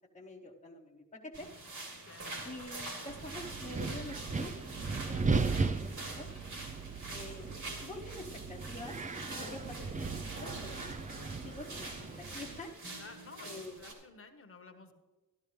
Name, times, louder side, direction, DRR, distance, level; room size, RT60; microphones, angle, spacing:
voice 1, 0.1-1.5 2.4-4.5 4.8-6.3 7.1-7.5 7.8-9.0 9.3-10.8 11.4-12.7 13.4-13.7, left 2 dB, 20° left, -3 dB, 1.0 m, -47 dB
sound 1, 1.3-13.9, right 2 dB, 55° right, 3.0 m, -45 dB
voice 2, 2.0-2.4 13.0-14.9, left 4 dB, 35° left, 6 dB, 1.2 m, -52 dB
Wind, 3.1-12.6, right 4 dB, 20° right, 0.4 m, -37 dB
13.0 x 12.5 x 3.2 m, 1.2 s
wide cardioid pair, 130°, 36 cm